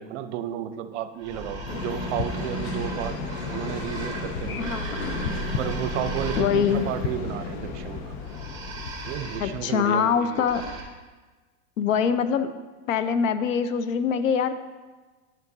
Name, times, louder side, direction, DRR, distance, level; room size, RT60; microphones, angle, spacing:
voice 1, 0.0-4.9 5.6-8.1 9.1-10.3, right 10 dB, 65° right, 11 dB, 0.6 m, -32 dB
sound 1, 1.2-7.0 8.2-10.8, right 4 dB, 10° right, 1.6 m, -37 dB
sound 2, 1.3-9.6, left 6 dB, 35° left, 0.5 m, -37 dB
sound 3, 1.7-9.0, left 3 dB, 60° left, 0.9 m, -34 dB
voice 2, 4.6-5.3 6.4-6.8 9.4-10.6 11.8-12.5 12.9-14.5, left 7 dB, 90° left, 11 dB, 0.6 m, -24 dB
11.0 x 5.2 x 2.7 m, 1.3 s
hypercardioid pair, 115°, 38 cm